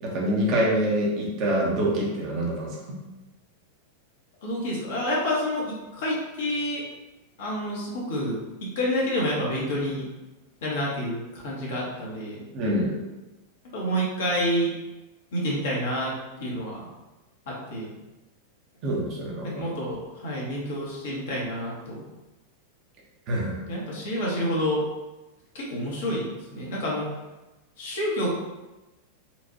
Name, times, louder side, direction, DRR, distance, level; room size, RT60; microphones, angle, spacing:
voice 1, 0.0-3.0 12.5-13.0 18.8-19.6 23.3-23.6, right 1 dB, 40° right, -3 dB, 1.0 m, -26 dB
voice 2, 4.4-6.8 7.4-8.4 8.7-10.0 10.6-12.5 13.7-14.7 15.3-16.1 16.4-16.9 17.5-17.9 19.4-22.0 23.7-24.8 25.5-27.1 27.8-28.3, equal, 55° left, -4 dB, 1.2 m, -28 dB
4.5 x 2.5 x 2.7 m, 1.1 s
figure-of-eight pair, 90°, 0 cm